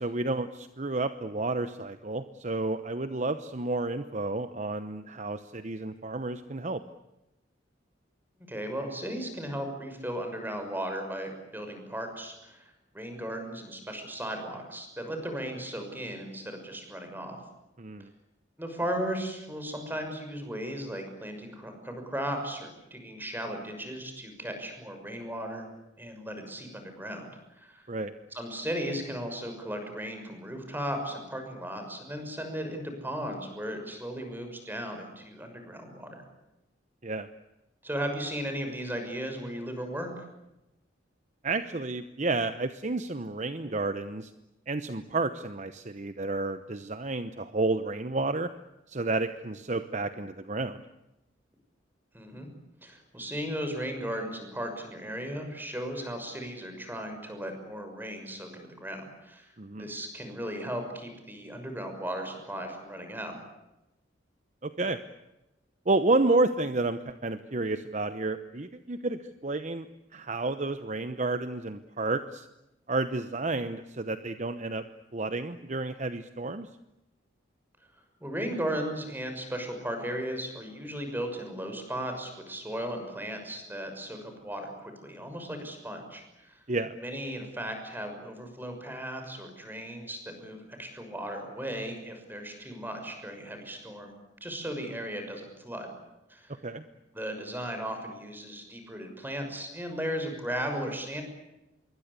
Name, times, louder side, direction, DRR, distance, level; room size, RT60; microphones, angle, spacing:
voice 1, 0.0-6.8 17.8-18.1 27.9-28.1 37.0-37.3 41.4-44.3 44.7-48.5 48.9-50.8 59.6-59.9 64.6-65.0 65.9-69.9 70.1-72.5 72.9-74.9 75.1-76.7 86.7-86.9 96.6-96.8, right 2 dB, 40° right, 11 dB, 0.9 m, -30 dB
voice 2, 8.5-17.4 18.6-25.7 26.0-27.3 27.6-27.8 28.3-36.2 37.8-40.1 52.1-52.5 52.8-59.5 59.8-63.4 78.2-86.6 87.0-94.1 94.4-95.9 96.3-96.6 97.1-101.2, equal, 10° right, 5 dB, 6.2 m, -36 dB
26.5 x 23.0 x 8.3 m, 0.94 s
head